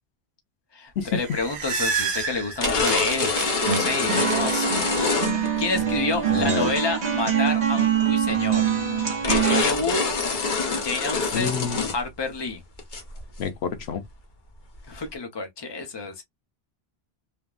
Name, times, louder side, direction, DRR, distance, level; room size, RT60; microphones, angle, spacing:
voice 1, 0.7-3.3 3.6-4.8 5.6-8.7 9.2-10.2 10.8-11.5 11.9-12.6 14.9-16.2, left 3 dB, 25° left, 0.8 m, -29 dB
sound 1, 1.0-4.4, right 5 dB, 80° right, 1.0 m, -29 dB
sound 2, 1.5-1.6 2.6-5.8 6.3-6.5 8.3-8.4 8.8-8.9 9.2-12.0 12.3-12.4 12.8-13.4, left 4 dB, 50° left, 0.9 m, -25 dB
sound 3, 3.6-9.6, right 8 dB, 45° right, 0.9 m, -24 dB
voice 2, 6.3-6.7 11.3-11.8 13.4-14.0, left 7 dB, 90° left, 0.9 m, -28 dB
3.4 x 2.1 x 2.4 m
omnidirectional pair, 1.1 m